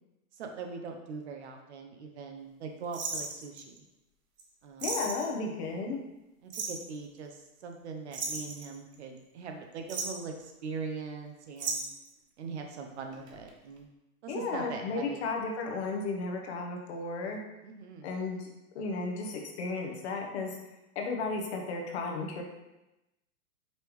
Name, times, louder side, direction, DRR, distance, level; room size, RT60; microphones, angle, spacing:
voice 1, 0.4-3.8 4.6-5.1 6.4-11.8 12.4-13.9 14.2-15.3 17.6-18.1, right 4 dB, 45° right, 4 dB, 0.6 m, -41 dB
sound 1, 2.9-3.8 4.4-4.5 4.8-5.3 6.5-6.9 8.1-9.2 9.7-10.3 11.6-12.1 13.1-13.5 13.8-13.9, right 4 dB, 90° right, 1.0 m, -35 dB
voice 2, 4.8-6.0 14.3-17.4 18.0-18.5 18.7-20.6 20.9-22.4, left 3 dB, 45° left, 1 dB, 0.8 m, -34 dB
5.3 x 3.3 x 3.0 m, 0.97 s
hypercardioid pair, 150°, 46 cm